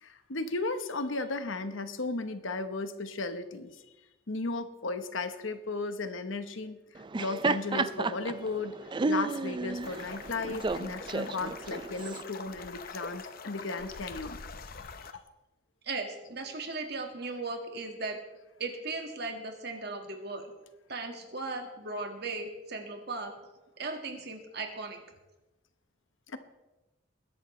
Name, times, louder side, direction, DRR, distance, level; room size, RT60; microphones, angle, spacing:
voice 1, 0.0-3.8 4.3-14.4 15.1-15.2 26.3-26.4, left 3 dB, 85° left, 9 dB, 1.1 m, -35 dB
Laughter, 7.0-12.2, right 3 dB, 25° right, 0.4 m, -32 dB
sound 1, 9.8-15.1, left 4 dB, 50° left, 0.7 m, -44 dB
voice 2, 15.8-18.2 18.6-20.5 20.9-23.3 23.8-25.0, right 3 dB, 55° right, 4 dB, 1.8 m, -37 dB
21.0 x 11.0 x 3.2 m, 1.1 s
head